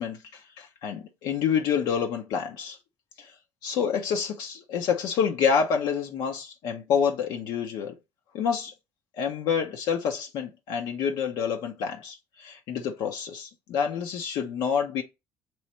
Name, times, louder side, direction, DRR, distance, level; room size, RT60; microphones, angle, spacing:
voice 1, 0.0-2.8 3.2-3.3 3.6-7.9 8.3-8.7 9.2-15.0, left 7 dB, 70° left, 0.7 m, -28 dB
3.1 x 3.0 x 4.3 m
supercardioid pair, 80°, 7 cm